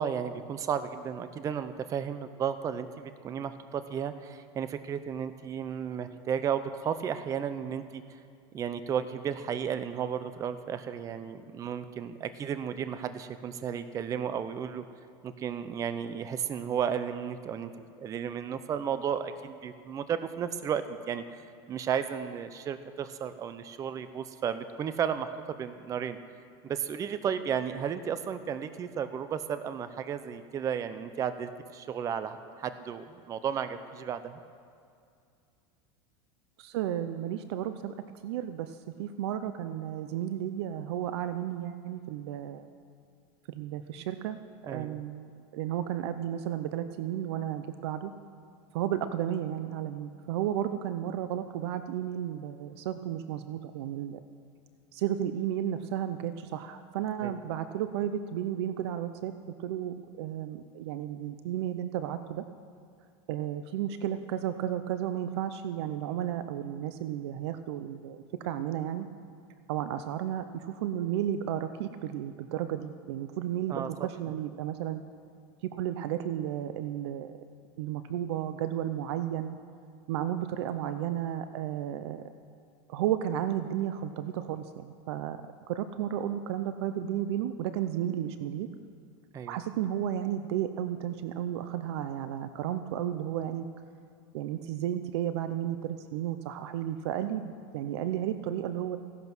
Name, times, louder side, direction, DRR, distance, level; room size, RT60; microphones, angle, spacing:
voice 1, 0.0-8.0 8.5-14.8 15.2-17.7 18.0-26.2 26.6-34.4 44.7-45.0 57.2-57.4 73.7-74.1 89.3-89.5, right 8 dB, 25° right, 11 dB, 0.6 m, -33 dB
voice 2, 36.6-38.0 38.2-42.7 43.5-48.1 48.7-54.2 54.9-59.3 59.6-62.4 63.3-69.1 69.7-75.0 75.6-77.4 77.8-79.6 80.1-82.2 82.9-88.7 89.5-93.7 94.3-99.0, right 11 dB, 70° right, 10 dB, 0.7 m, -33 dB
16.5 x 11.0 x 6.1 m, 2.4 s
supercardioid pair, 145°, 14 cm